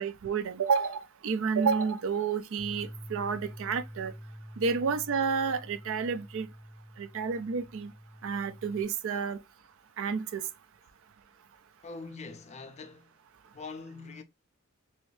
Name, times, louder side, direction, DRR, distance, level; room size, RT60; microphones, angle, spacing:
voice 1, 0.0-4.1 4.6-6.5 7.0-7.9 8.2-9.4 10.0-10.4, right 5 dB, 65° right, 0.4 m, -30 dB
Bass guitar, 2.6-8.8, equal, 10° right, 0.6 m, -47 dB
voice 2, 11.8-13.1 13.5-14.2, left 3 dB, 30° left, 0.4 m, -43 dB
3.1 x 2.6 x 3.1 m
head